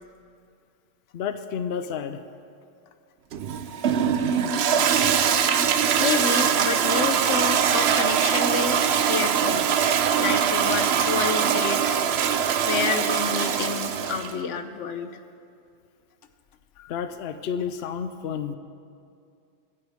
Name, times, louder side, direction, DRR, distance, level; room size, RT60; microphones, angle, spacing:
voice 1, 1.1-2.2 16.8-18.6, left 7 dB, 65° left, 10 dB, 0.8 m, -31 dB
Toilet flush, 3.3-14.4, right 8 dB, 65° right, 0.9 m, -22 dB
voice 2, 6.0-9.7 10.2-12.0 12.7-15.2, left 5 dB, 80° left, 8 dB, 1.1 m, -29 dB
24.5 x 10.0 x 3.6 m, 2.4 s
omnidirectional pair, 1.2 m